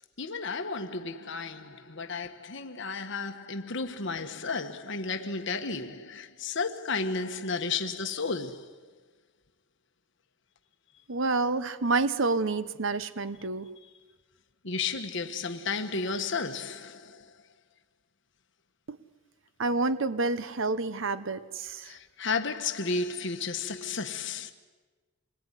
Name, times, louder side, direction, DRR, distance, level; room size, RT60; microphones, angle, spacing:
voice 1, 0.2-8.8 14.6-17.3 21.8-24.5, left 4 dB, 55° left, 1.4 m, -33 dB
voice 2, 11.1-13.7 18.9-19.0 19.6-22.0, right 3 dB, 60° right, 0.9 m, -28 dB
27.0 x 22.0 x 9.9 m
head